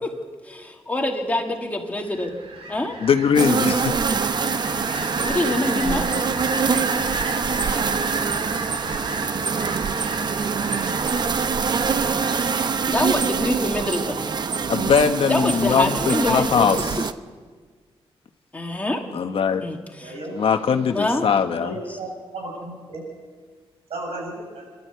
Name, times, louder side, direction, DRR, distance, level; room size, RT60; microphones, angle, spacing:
voice 1, 0.4-2.3 2.7-3.0 5.2-6.1 12.9-14.2 15.3-16.9 18.5-19.0 19.6-19.8 20.9-21.3 21.9-22.0, left 1 dB, 15° left, 1 dB, 2.2 m, -25 dB
sound 1, 2.1-12.5, right 3 dB, 70° right, 2.6 m, -32 dB
voice 2, 3.0-3.9 14.7-16.8 19.1-19.7 20.3-21.7, left 6 dB, 65° left, 7 dB, 1.1 m, -20 dB
sound 2, 3.3-17.1, right 5 dB, 45° right, 0.7 m, -24 dB
voice 3, 20.0-20.9 21.6-23.0 23.9-24.7, right 2 dB, 85° right, -1 dB, 7.0 m, -35 dB
27.0 x 12.0 x 8.1 m, 1.5 s
wide cardioid pair, 160°, 10 cm